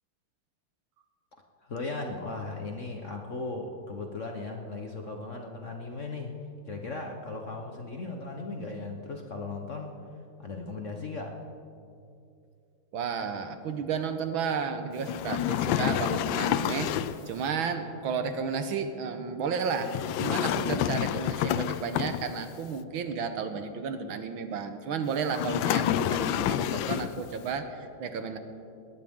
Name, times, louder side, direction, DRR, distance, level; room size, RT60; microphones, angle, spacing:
voice 1, 1.7-6.3 6.6-9.9 10.4-11.3, left 3 dB, 45° left, 2 dB, 1.1 m, -37 dB
voice 2, 12.9-28.4, right 5 dB, 70° right, 8 dB, 1.7 m, -32 dB
sound 1, 15.0-17.3 19.8-22.5 25.3-27.2, left 11 dB, 75° left, 1.2 m, -28 dB
20.5 x 17.0 x 3.7 m, 2.5 s
omnidirectional pair, 2.3 m